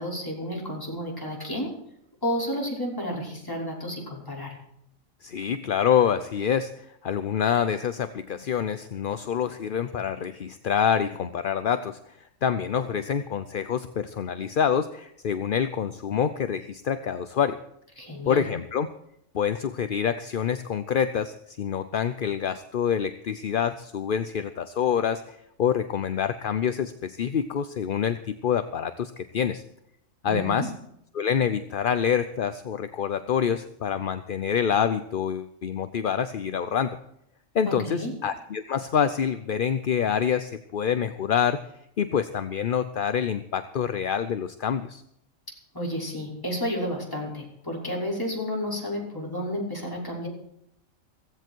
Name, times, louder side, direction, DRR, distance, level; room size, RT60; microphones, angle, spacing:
voice 1, 0.0-1.7 2.2-4.6 18.0-18.4 30.2-30.7 37.7-38.1 45.7-50.3, equal, 15° left, -3 dB, 5.8 m, -31 dB
voice 2, 5.2-12.0 12.4-17.6 18.3-18.9 19.3-29.6 30.2-30.7 31.1-37.0 37.5-41.6 42.0-45.0, left 8 dB, 50° left, 10 dB, 0.7 m, -26 dB
16.0 x 16.0 x 4.6 m, 0.76 s
omnidirectional pair, 1.4 m